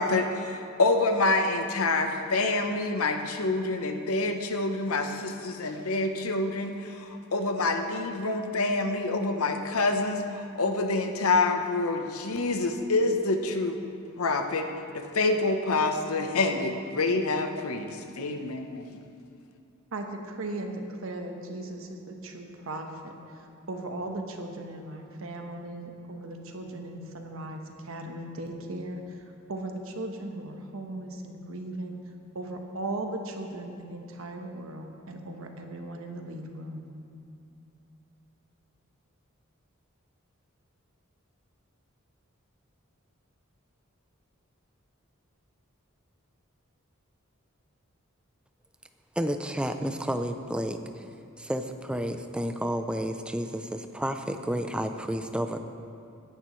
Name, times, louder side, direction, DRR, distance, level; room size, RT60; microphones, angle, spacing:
voice 1, 0.0-13.8 14.2-14.7 14.9-18.9, left 3 dB, 90° left, 5 dB, 0.9 m, -27 dB
voice 2, 19.9-29.2 29.5-32.0 32.3-36.8, right 2 dB, 70° right, 3 dB, 1.2 m, -37 dB
voice 3, 49.2-51.1 51.4-55.6, equal, 5° right, 7 dB, 0.5 m, -31 dB
17.0 x 10.5 x 3.2 m, 2.5 s
head